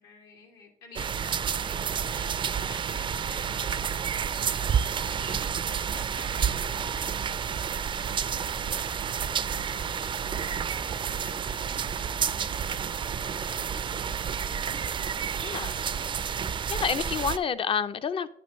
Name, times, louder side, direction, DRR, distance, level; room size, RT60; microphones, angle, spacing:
voice 1, 0.0-2.4 2.6-10.7 11.0-11.5 11.8-14.9, left 4 dB, 85° left, 2.6 m, -53 dB
sound 1, 1.0-17.4, right 7 dB, 30° right, 0.3 m, -30 dB
sound 2, 6.8-9.8 10.3-13.3, left 5 dB, 60° left, 3.3 m, -54 dB
sound 3, 8.5-14.5, right 7 dB, 85° right, 0.8 m, -53 dB
voice 2, 15.4-15.8 16.7-18.3, left 6 dB, 35° left, 0.4 m, -29 dB
10.5 x 8.4 x 3.0 m
cardioid pair, 110°, 17 cm